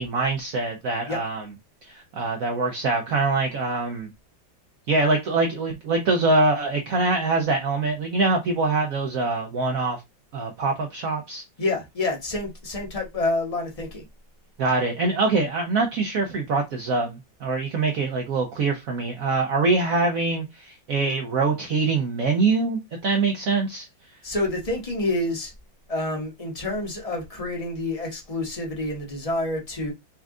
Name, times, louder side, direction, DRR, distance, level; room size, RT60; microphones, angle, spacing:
voice 1, 0.0-1.4 1.8-4.1 4.9-10.0 10.3-11.4 14.6-23.9, right 3 dB, 70° right, 0.8 m, -24 dB
voice 2, 11.6-14.1 24.2-25.5 25.9-29.9, left 2 dB, 25° left, 0.8 m, -28 dB
4.3 x 2.4 x 3.6 m
omnidirectional pair, 2.1 m